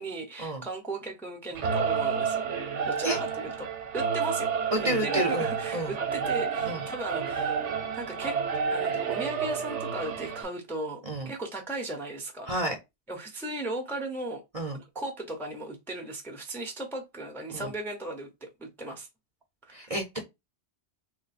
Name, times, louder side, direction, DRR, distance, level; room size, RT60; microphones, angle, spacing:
voice 1, 0.0-2.5 2.9-3.7 3.9-4.5 5.0-7.7 7.9-8.4 8.7-12.5 13.1-14.4 14.9-19.1 19.6-19.9, right 2 dB, ahead, 0.6 m, -37 dB
Singing / Musical instrument, 1.5-10.4, right 6 dB, 75° right, 1.0 m, -30 dB
voice 2, 4.7-5.9 6.7-6.9 11.0-11.3 12.5-12.8 14.5-14.8 17.5-17.7 19.7-20.2, right 1 dB, 35° right, 0.7 m, -30 dB
3.0 x 2.1 x 4.1 m
omnidirectional pair, 1.2 m